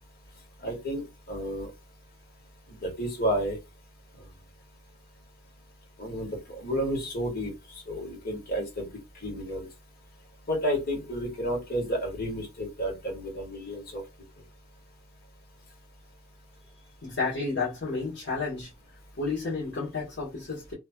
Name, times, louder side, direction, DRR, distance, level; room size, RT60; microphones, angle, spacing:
voice 1, 0.6-1.7 2.8-3.6 6.0-6.3 6.6-7.5 7.9-8.9 9.2-9.7 10.5-14.0, equal, 50° left, 1.5 m, -31 dB
voice 2, 17.0-18.7 19.2-20.7, left 4 dB, 65° left, 1.3 m, -31 dB
2.8 x 2.8 x 2.3 m
head